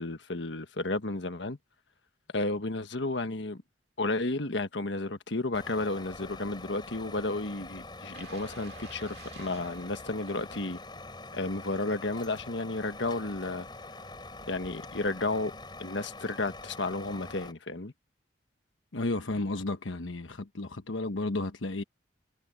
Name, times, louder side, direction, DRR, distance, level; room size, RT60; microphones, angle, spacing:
voice 1, 0.0-1.6 2.3-3.6 4.0-10.8 11.3-13.7 14.5-15.5 15.8-17.9, left 2 dB, 70° left, 1.4 m, -32 dB
Truck, 5.5-17.5, left 2 dB, 25° left, 4.3 m, -45 dB
sound 1, 8.1-11.1 11.5-11.7, right 4 dB, 55° right, 2.3 m, -51 dB
voice 2, 18.9-21.8, left 2 dB, 90° left, 1.1 m, -33 dB
head